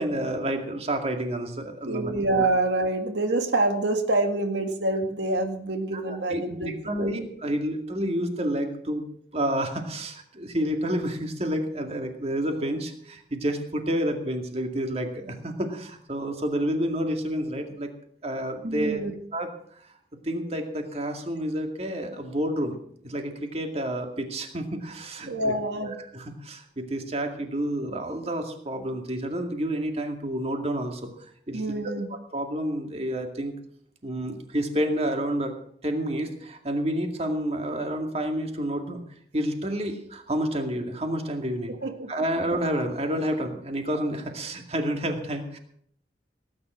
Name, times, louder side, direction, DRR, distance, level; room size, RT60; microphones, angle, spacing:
voice 1, 0.0-2.1 5.9-9.0 9.3-17.9 18.2-19.0 19.3-19.5 20.2-22.8 23.0-25.5 25.8-31.1 31.5-31.8 32.3-33.5 34.0-35.5 35.8-39.0 39.3-41.7 42.1-45.6, right 1 dB, 35° right, 4 dB, 2.2 m, -29 dB
voice 2, 1.9-7.1 18.6-19.1 25.3-26.0 31.5-32.1 41.8-42.1, right 2 dB, 85° right, 5 dB, 1.9 m, -26 dB
18.0 x 9.5 x 6.2 m, 0.65 s
head